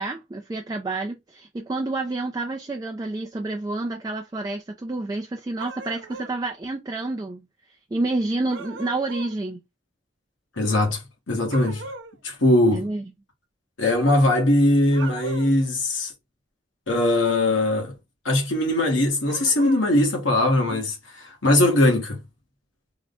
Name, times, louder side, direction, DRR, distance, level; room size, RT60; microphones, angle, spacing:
voice 1, 0.0-7.4 7.9-9.6 12.7-13.0, right 2 dB, 20° right, 0.3 m, -29 dB
sound 1, 5.6-6.4 8.5-9.4 11.5-12.1 14.9-15.6 19.3-19.9, right 3 dB, 75° right, 0.7 m, -38 dB
voice 2, 10.6-11.8 12.2-12.9 13.8-16.1 16.9-18.0 18.2-22.2, left 1 dB, 85° left, 1.2 m, -21 dB
3.6 x 2.1 x 3.5 m
head